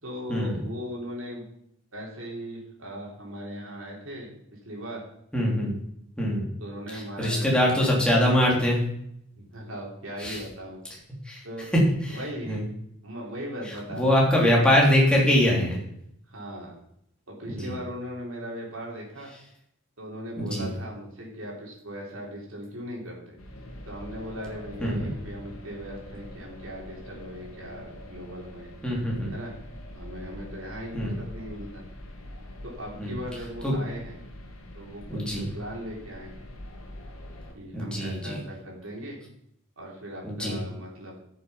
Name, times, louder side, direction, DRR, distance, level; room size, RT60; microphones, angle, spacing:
voice 1, 0.0-1.4 1.9-5.0 6.6-7.9 9.3-10.8 11.4-11.7 12.1-12.7 13.0-14.2 16.3-16.7 17.3-19.3 20.0-23.4 23.9-28.7 29.3-29.5 29.9-31.8 32.6-34.2 34.7-36.4 37.5-39.2 39.8-41.2, equal, 70° right, -2 dB, 3.6 m, -38 dB
voice 2, 5.3-5.7 6.2-6.5 6.9-8.8 10.2-10.4 11.2-11.4 11.7-12.6 13.6-15.8 17.5-17.7 20.4-20.7 24.8-25.1 28.8-29.3 30.9-31.1 33.0-33.2 33.6-33.7 35.1-35.5 37.7-38.4 40.2-40.6, equal, 5° left, -3 dB, 3.2 m, -23 dB
sound 1, 23.4-37.5, left 1 dB, 80° left, 2.1 m, -44 dB
13.0 x 6.9 x 5.7 m, 0.75 s
head